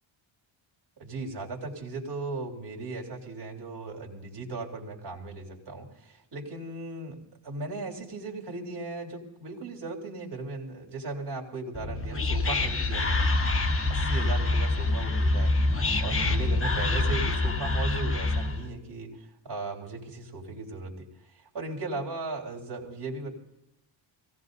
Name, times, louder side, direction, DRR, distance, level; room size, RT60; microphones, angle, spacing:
voice 1, 1.0-7.2 7.4-13.3 13.9-15.5 16.0-19.1 19.4-21.1 21.4-23.4, right 3 dB, 55° right, -1 dB, 3.5 m, -37 dB
Whispering, 11.7-18.7, left 2 dB, 25° left, 1.4 m, -26 dB
24.0 x 17.5 x 2.7 m, 0.85 s
wide cardioid pair, 145°, 47 cm